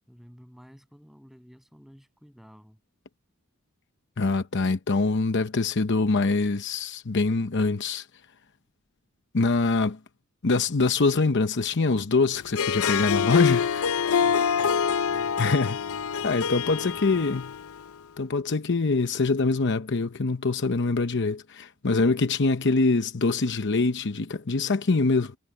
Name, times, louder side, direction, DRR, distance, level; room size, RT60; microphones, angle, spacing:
voice 1, 0.1-2.8 14.1-17.3, equal, ahead, 7.1 m, -52 dB
voice 2, 4.2-8.1 9.3-10.0 10.4-13.8 15.4-15.8 16.2-17.4 18.2-25.4, left 3 dB, 55° left, 0.8 m, -24 dB
Harp, 12.4-17.9, left 7 dB, 85° left, 0.6 m, -26 dB
head